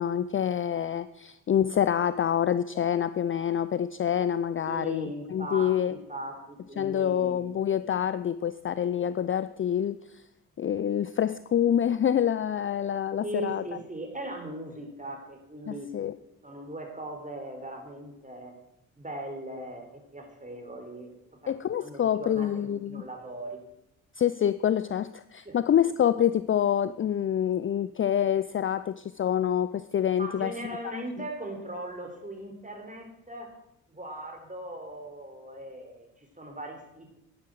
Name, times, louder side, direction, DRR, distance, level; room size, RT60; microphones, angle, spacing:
voice 1, 0.0-5.9 6.8-10.0 10.6-13.6 15.7-16.1 21.5-23.0 24.2-30.5 30.9-31.0, left 9 dB, 30° left, 15 dB, 0.5 m, -26 dB
voice 2, 4.7-7.6 13.2-15.9 16.4-18.5 19.0-21.1 21.4-21.5 21.8-23.6 25.4-25.6 30.2-33.5 33.9-37.2, right 1 dB, 20° right, 3 dB, 4.0 m, -39 dB
11.5 x 9.3 x 6.4 m, 0.85 s
hypercardioid pair, 40°, 42 cm